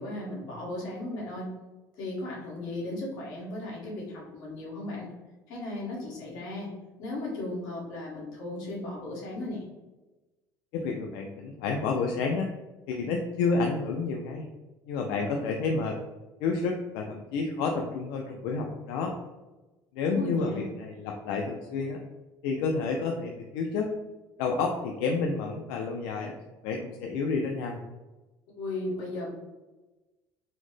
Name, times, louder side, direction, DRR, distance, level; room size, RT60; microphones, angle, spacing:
voice 1, 0.0-1.5 2.0-5.1 5.5-6.7 7.0-9.6 20.1-20.7 28.5-29.3, left 2 dB, 65° left, -4 dB, 1.4 m, -36 dB
voice 2, 10.7-12.5 12.9-14.5 14.9-16.0 16.4-19.1 20.0-22.0 22.4-23.9 24.4-26.3 26.6-27.8, left 4 dB, 90° left, 2 dB, 0.3 m, -30 dB
4.0 x 2.0 x 3.1 m, 1.1 s
cardioid pair, 170°, 7 cm